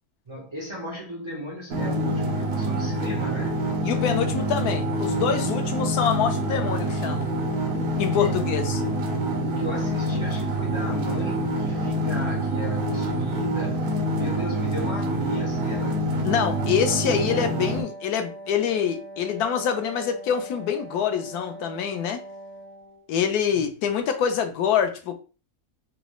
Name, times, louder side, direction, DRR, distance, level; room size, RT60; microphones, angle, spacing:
voice 1, 0.3-3.6 8.0-8.7 9.4-13.9 14.1-16.1 23.5-23.6, equal, 50° right, 0.3 m, -36 dB
sound 1, 1.7-17.8, right 1 dB, 75° right, 1.3 m, -26 dB
voice 2, 3.8-7.3 8.0-8.8 16.2-22.2 23.1-25.1, left 8 dB, 75° left, 1.1 m, -25 dB
Wind instrument woodwind instrument, 16.3-23.1, right 1 dB, 40° left, 0.5 m, -42 dB
4.0 x 2.3 x 3.0 m
omnidirectional pair, 1.7 m